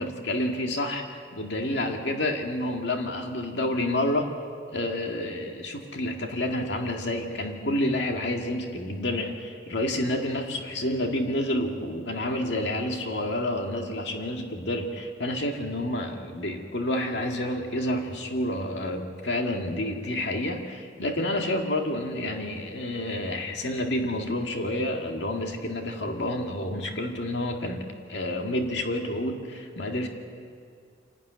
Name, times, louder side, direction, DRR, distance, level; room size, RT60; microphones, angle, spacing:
voice 1, 0.0-4.3 4.7-30.1, left 1 dB, 70° left, 2 dB, 2.0 m, -29 dB
28.0 x 12.0 x 9.5 m, 2.2 s
head